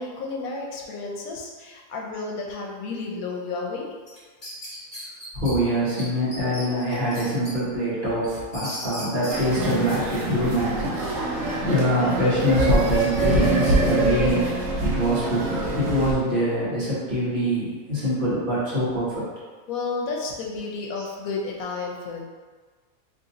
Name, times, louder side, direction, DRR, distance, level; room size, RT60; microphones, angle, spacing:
voice 1, 0.0-3.9 19.7-22.2, left 3 dB, 80° left, -1 dB, 1.1 m, -32 dB
sound 1, 4.1-5.5 6.0-6.1 6.3-7.5 7.9-9.4, left 1 dB, 35° left, 1.2 m, -37 dB
voice 2, 5.3-14.4 14.8-19.2, equal, 40° right, -9 dB, 1.2 m, -24 dB
sound 2, 9.3-16.1, right 1 dB, 75° right, 1.1 m, -24 dB
2.9 x 2.6 x 3.8 m, 1.5 s
omnidirectional pair, 1.5 m